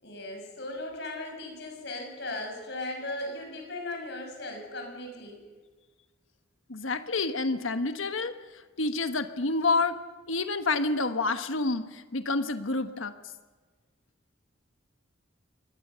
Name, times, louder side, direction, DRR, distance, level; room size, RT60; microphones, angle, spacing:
voice 1, 0.0-5.4, left 2 dB, 55° left, 3 dB, 6.6 m, -37 dB
voice 2, 6.7-8.3 8.8-10.0 10.3-13.1, left 3 dB, 85° left, 9 dB, 1.3 m, -28 dB
24.0 x 20.0 x 6.9 m, 1.4 s
head